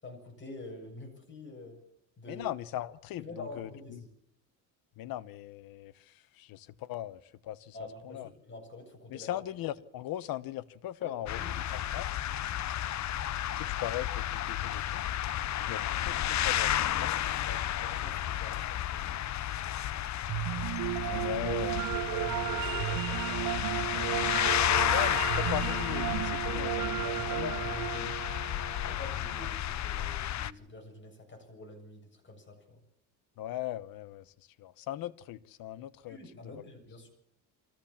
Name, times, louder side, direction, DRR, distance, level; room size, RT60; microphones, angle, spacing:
voice 1, 0.0-1.8 2.2-2.5 3.2-4.1 7.7-9.3 11.0-11.6 17.4-19.2 21.0-21.3 22.1-23.5 27.0-28.0 28.9-32.8 36.1-37.1, left 2 dB, 30° left, 7.7 m, -46 dB
voice 2, 2.3-4.0 5.0-7.8 8.0-8.3 9.1-11.6 11.9-12.2 13.6-15.1 15.7-17.6 21.1-21.7 24.9-27.0 27.3-27.5 27.9-28.1 33.4-36.2 36.4-36.6, left 13 dB, 75° left, 1.1 m, -39 dB
sound 1, 11.3-30.5, left 12 dB, 50° left, 0.8 m, -32 dB
sound 2, 20.3-29.4, right 16 dB, 65° right, 0.7 m, -34 dB
24.0 x 15.0 x 7.3 m
cardioid pair, 100°, 35 cm